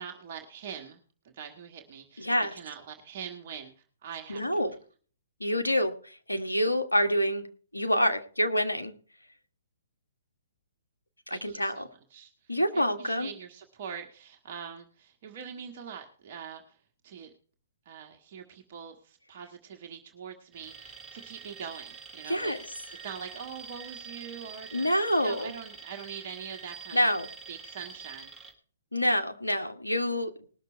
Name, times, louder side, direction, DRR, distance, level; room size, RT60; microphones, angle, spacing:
voice 1, 0.0-3.7 4.0-4.7 11.3-16.8 17.0-17.3 17.8-27.1 27.5-28.3, right 7 dB, 45° right, 3 dB, 1.5 m, -43 dB
voice 2, 2.2-2.5 4.3-4.7 5.4-7.5 7.7-8.9 11.3-11.8 12.5-13.3 22.3-22.6 24.7-25.5 26.9-27.3 28.9-30.3, equal, 90° left, 6 dB, 1.5 m, -27 dB
Alarm, 20.5-28.5, right 5 dB, 10° right, 2.7 m, -46 dB
20.0 x 6.6 x 4.4 m, 0.42 s
figure-of-eight pair, 120°, 0 cm